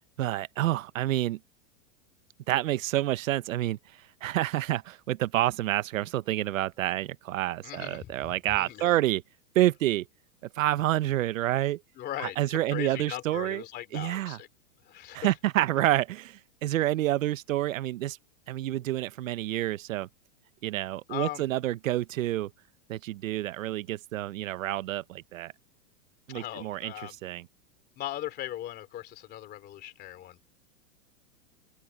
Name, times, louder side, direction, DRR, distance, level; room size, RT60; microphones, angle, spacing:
voice 1, 0.2-1.4 2.5-3.8 4.2-9.2 9.5-10.1 10.6-11.8 12.2-13.6 13.9-14.4 15.1-18.2 18.5-20.1 20.6-22.5 22.9-25.5 26.3-26.9 27.2-27.4, right 14 dB, 80° right, 1.0 m, -28 dB
voice 2, 7.6-9.0 12.0-14.5 14.8-15.4 21.1-21.4 26.3-27.2 28.0-30.4, left 13 dB, 25° left, 2.9 m, -39 dB
open air
supercardioid pair, 155°, 39 cm